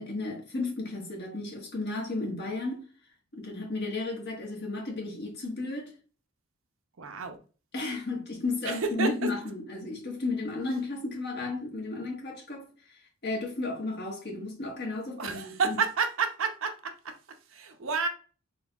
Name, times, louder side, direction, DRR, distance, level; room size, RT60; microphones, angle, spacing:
voice 1, 0.0-2.8 3.3-5.9 7.7-12.6 13.2-15.8, left 2 dB, 50° left, 1.4 m, -33 dB
voice 2, 7.0-7.4 8.6-9.3 15.2-18.1, right 5 dB, 65° right, 0.6 m, -30 dB
4.1 x 3.5 x 2.4 m
head